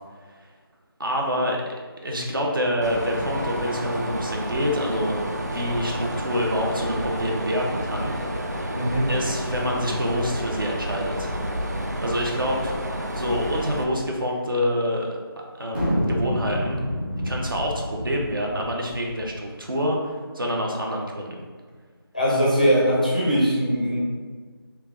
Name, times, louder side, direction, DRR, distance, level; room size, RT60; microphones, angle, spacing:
voice 1, 1.0-1.7 2.0-5.2 5.4-8.7 9.1-11.3 12.0-15.1 15.6-16.8 17.2-21.4, equal, 60° right, -1 dB, 0.8 m, -27 dB
Mechanisms, 2.8-13.8, right 1 dB, 45° right, 0.4 m, -30 dB
voice 2, 8.8-9.1 11.8-11.9 22.1-24.0, equal, 20° left, -6 dB, 0.5 m, -21 dB
sound 1, 15.7-19.3, equal, 25° right, 1.0 m, -28 dB
3.4 x 2.9 x 3.5 m, 1.5 s
figure-of-eight pair, 180°, 13 cm